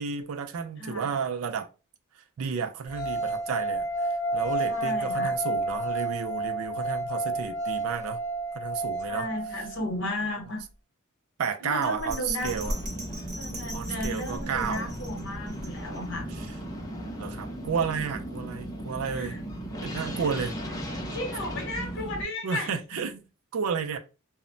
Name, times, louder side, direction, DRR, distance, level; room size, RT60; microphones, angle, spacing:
voice 1, 0.0-1.7 2.4-8.2 8.5-9.3 11.4-12.8 13.7-14.9 16.4-16.5 17.2-19.4 19.8-20.6 22.4-23.2 23.5-24.0, right 6 dB, 75° right, 0.4 m, -32 dB
voice 2, 0.8-1.1 4.7-5.3 9.1-10.6 11.6-12.5 13.4-16.3 19.1-19.4 21.1-23.1, left 2 dB, 60° left, 0.9 m, -34 dB
sound 1, 2.9-10.0, right 2 dB, 90° left, 0.6 m, -30 dB
Bell, 11.8-16.2 16.6-16.7, equal, 35° right, 0.9 m, -38 dB
sound 2, 12.4-22.2, right 1 dB, 15° left, 0.6 m, -37 dB
2.1 x 2.0 x 3.7 m
head